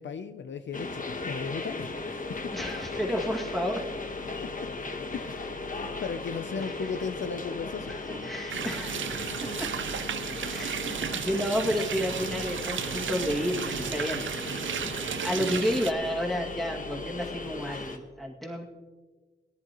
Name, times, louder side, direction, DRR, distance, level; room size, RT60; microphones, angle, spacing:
voice 1, 0.0-2.5 4.4-4.7 5.1-8.0 10.6-10.7, left 6 dB, 70° left, 9 dB, 0.5 m, -36 dB
sound 1, 0.7-18.0, left 3 dB, 45° left, 1.1 m, -37 dB
voice 2, 2.5-3.9 6.6-7.0 7.9-9.1 9.4-9.7 10.4-10.8 11.1-14.9 15.2-18.7, equal, ahead, -2 dB, 2.1 m, -31 dB
sound 2, 8.5-15.9, right 8 dB, 80° right, 0.5 m, -34 dB
18.5 x 10.5 x 3.0 m, 1.4 s
wide cardioid pair, 90°, 20 cm